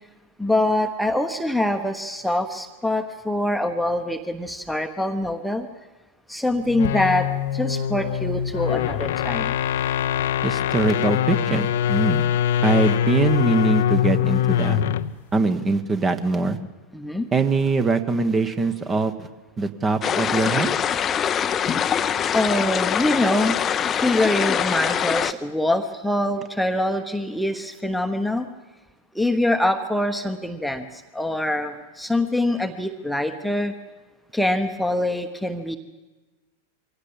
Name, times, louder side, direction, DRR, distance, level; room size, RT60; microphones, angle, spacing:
voice 1, 0.4-5.7 6.3-9.6 16.9-17.3 22.3-23.6 23.9-28.5 29.1-33.7 34.3-35.8, left 1 dB, ahead, 6 dB, 1.2 m, -24 dB
sound 1, 6.7-15.2, left 10 dB, 55° left, 0.8 m, -23 dB
voice 2, 10.4-12.2 12.6-14.8 15.3-16.6 17.3-19.3 19.6-20.7, right 3 dB, 20° right, 10 dB, 1.4 m, -22 dB
sound 2, 20.0-25.3, left 8 dB, 25° left, 0.8 m, -23 dB
23.5 x 16.5 x 8.8 m, 1.2 s
figure-of-eight pair, 90°, 0 cm